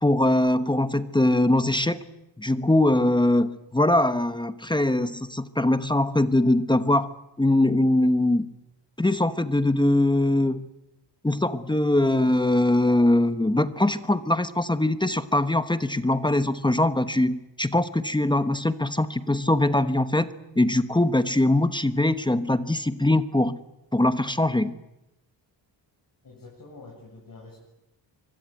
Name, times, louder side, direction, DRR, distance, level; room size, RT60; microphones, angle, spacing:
voice 1, 0.0-2.0 2.4-7.1 7.4-8.4 9.0-10.7 11.2-20.3 20.6-23.6 23.9-24.7, left 1 dB, 10° left, 11 dB, 1.0 m, -22 dB
voice 2, 26.2-27.6, left 3 dB, 45° left, -3 dB, 7.8 m, -46 dB
24.5 x 24.0 x 9.2 m, 0.91 s
wide cardioid pair, 145°, 45 cm